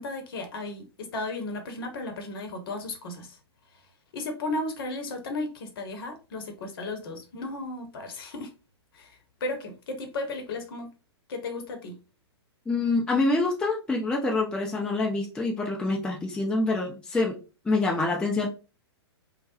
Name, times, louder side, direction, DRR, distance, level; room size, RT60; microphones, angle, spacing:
voice 1, 0.0-3.4 4.1-8.5 8.9-10.9 11.3-12.0, left 2 dB, 55° left, 0.8 m, -35 dB
voice 2, 12.7-17.4 17.6-18.5, left 3 dB, 5° left, 0.5 m, -26 dB
3.2 x 2.1 x 2.9 m
hypercardioid pair, 115°, 14 cm